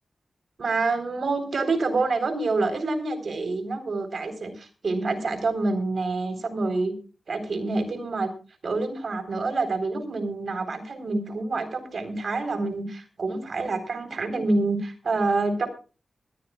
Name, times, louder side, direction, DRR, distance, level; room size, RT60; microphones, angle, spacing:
voice 1, 0.6-6.9 7.3-8.3 8.6-15.7, right 3 dB, 70° right, 8 dB, 4.0 m, -27 dB
20.0 x 15.5 x 2.4 m, 0.34 s
cardioid pair, 45°, 0 cm